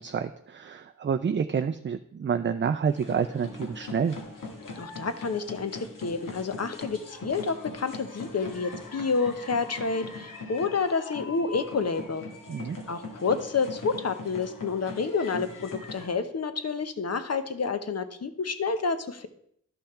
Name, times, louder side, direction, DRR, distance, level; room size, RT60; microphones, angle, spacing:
voice 1, 0.0-4.2 12.5-12.8, right 6 dB, 35° right, 9 dB, 0.4 m, -28 dB
sound 1, 2.8-16.1, left 3 dB, 80° left, 1.8 m, -41 dB
voice 2, 4.8-12.3 12.9-19.3, left 4 dB, 50° left, 10 dB, 0.9 m, -29 dB
11.5 x 5.6 x 4.3 m, 0.68 s
wide cardioid pair, 80°, 32 cm